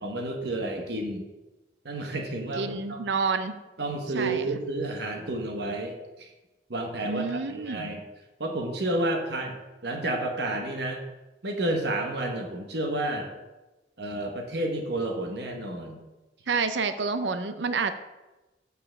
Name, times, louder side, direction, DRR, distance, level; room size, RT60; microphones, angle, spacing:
voice 1, 0.0-1.3 1.8-3.0 3.8-6.3 6.7-8.0 8.4-9.6 9.8-11.0 11.4-13.3 14.0-16.0, right 1 dB, 70° right, 3 dB, 1.2 m, -30 dB
voice 2, 2.6-3.6 4.1-4.5 7.0-7.9 16.5-17.9, right 4 dB, 90° right, 10 dB, 0.6 m, -28 dB
6.8 x 5.6 x 6.3 m, 1.1 s
head